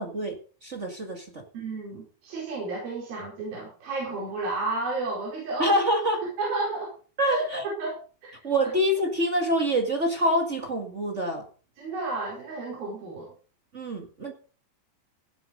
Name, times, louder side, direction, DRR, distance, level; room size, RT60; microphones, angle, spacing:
voice 1, 0.0-1.4 5.6-6.3 7.2-7.7 8.4-11.5 13.7-14.3, equal, 45° right, 3 dB, 0.9 m, -26 dB
voice 2, 1.5-5.8 6.4-6.9 7.3-7.4 7.8-7.9 8.2-8.7 11.8-13.3, right 3 dB, 75° right, -4 dB, 6.4 m, -32 dB
17.5 x 7.8 x 5.3 m, 0.39 s
omnidirectional pair, 4.2 m